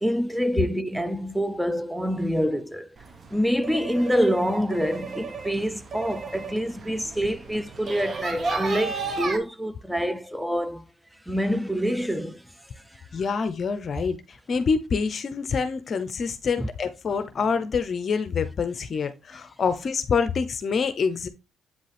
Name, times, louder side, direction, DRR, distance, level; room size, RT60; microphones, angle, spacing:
voice 1, 0.0-3.0 3.3-10.9 11.3-12.4 12.9-13.0 16.6-16.7 19.3-19.4, equal, ahead, 0.6 m, -26 dB
sound 1, 3.0-9.4, right 4 dB, 45° right, 1.1 m, -34 dB
voice 2, 13.1-21.3, left 5 dB, 50° left, 0.7 m, -26 dB
8.2 x 5.2 x 3.3 m
cardioid pair, 90°, 0 cm